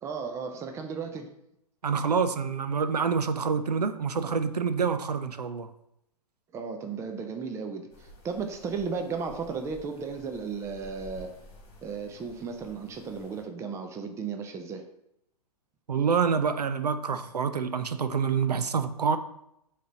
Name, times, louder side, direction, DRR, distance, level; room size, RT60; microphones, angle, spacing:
voice 1, 0.0-1.3 6.5-11.3 11.8-14.8, right 5 dB, 15° right, 5 dB, 0.5 m, -35 dB
voice 2, 1.8-5.7 15.9-19.2, right 6 dB, 80° right, 11 dB, 0.5 m, -27 dB
sound 1, 7.9-13.4, equal, 25° left, 1.6 m, -51 dB
9.8 x 3.4 x 2.8 m, 0.79 s
figure-of-eight pair, 110°, 20 cm